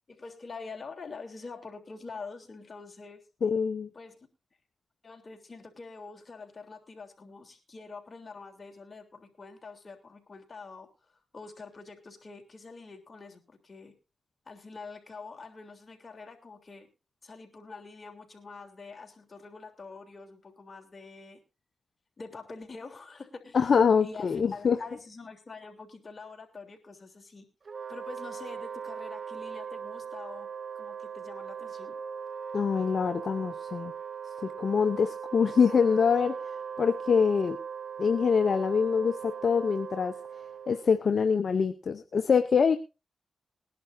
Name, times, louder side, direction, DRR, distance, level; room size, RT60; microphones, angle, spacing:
voice 1, 0.1-3.3 3.9-4.3 5.0-13.9 14.4-16.9 17.2-21.4 22.2-23.7 24.0-27.5 27.9-30.5 30.7-31.9, left 4 dB, 50° left, 3 dB, 3.2 m, -45 dB
voice 2, 3.4-3.9 23.5-24.8 32.5-33.9 34.4-36.4 36.8-37.6 38.0-40.2 40.7-42.8, left 6 dB, 70° left, 10 dB, 0.7 m, -25 dB
Wind instrument woodwind instrument, 27.7-41.1, right 7 dB, 60° right, 1.1 m, -39 dB
20.5 x 11.0 x 2.6 m, 0.29 s
supercardioid pair, 45°, 0 cm